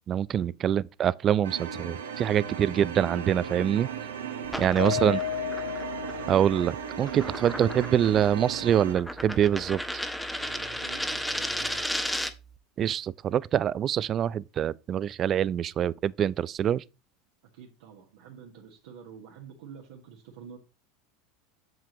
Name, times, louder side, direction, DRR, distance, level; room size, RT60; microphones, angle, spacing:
voice 1, 0.1-3.9 4.6-5.2 6.3-9.8 12.8-16.8, right 9 dB, 40° right, 0.4 m, -25 dB
sound 1, 1.4-8.9, right 7 dB, 85° right, 1.3 m, -37 dB
sound 2, 4.4-12.5, equal, 5° left, 1.0 m, -35 dB
Mallet percussion, 4.8-7.0, left 11 dB, 80° left, 0.5 m, -33 dB
voice 2, 10.4-12.0 17.5-20.6, right 7 dB, 70° right, 1.5 m, -48 dB
7.9 x 7.5 x 3.0 m
hypercardioid pair, 85°, 0 cm